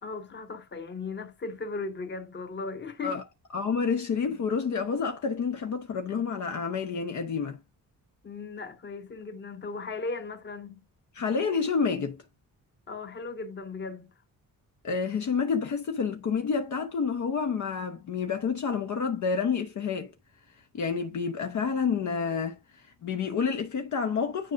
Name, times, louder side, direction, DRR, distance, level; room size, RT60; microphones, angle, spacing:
voice 1, 0.0-3.2 8.2-10.8 12.9-14.1, left 3 dB, 30° left, 1.2 m, -37 dB
voice 2, 3.5-7.6 11.1-12.2 14.8-20.1 20.7-22.6 23.0-24.5, left 5 dB, 55° left, 0.9 m, -29 dB
10.0 x 5.1 x 2.5 m
wide cardioid pair, 160°, 34 cm